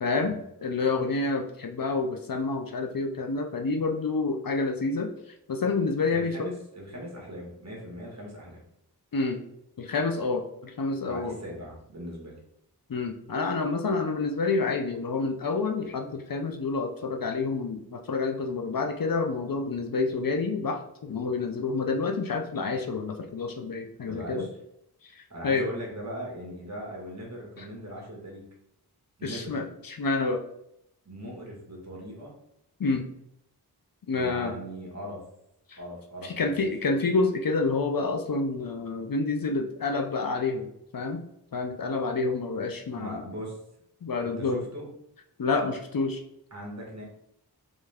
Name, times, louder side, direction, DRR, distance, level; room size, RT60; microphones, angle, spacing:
voice 1, 0.0-5.1 5.5-6.5 9.1-9.4 9.8-11.4 12.9-24.5 25.2-25.7 27.6-27.7 29.2-30.4 32.8-33.1 34.1-34.5 35.7-35.8 36.2-41.2 41.5-43.2 44.0-44.7 45.4-46.2, left 3 dB, 60° left, 5 dB, 0.5 m, -28 dB
voice 2, 6.1-8.6 11.0-12.4 24.1-24.5 25.3-28.4 29.2-29.6 31.0-32.3 34.1-35.2 35.8-36.7 42.9-43.6 44.4-44.9 46.5-47.0, equal, 40° right, -2 dB, 1.4 m, -39 dB
3.5 x 3.2 x 3.4 m, 0.78 s
wide cardioid pair, 70°, 40 cm